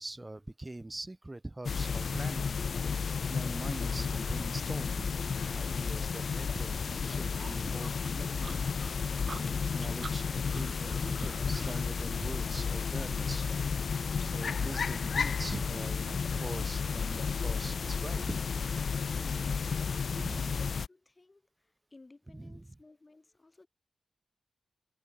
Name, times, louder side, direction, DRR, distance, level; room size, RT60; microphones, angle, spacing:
voice 1, 0.0-2.6 3.3-5.1 5.5-8.6 9.3-13.5 14.2-18.4 20.1-20.6 22.3-22.8, right 2 dB, 15° right, 1.4 m, -43 dB
sound 1, 1.6-20.9, left 5 dB, 55° left, 0.5 m, -32 dB
sound 2, 7.3-11.8, right 4 dB, 40° right, 0.5 m, -48 dB
voice 2, 19.2-23.7, left 3 dB, 25° left, 4.9 m, -58 dB
wide cardioid pair, 170°, 0 cm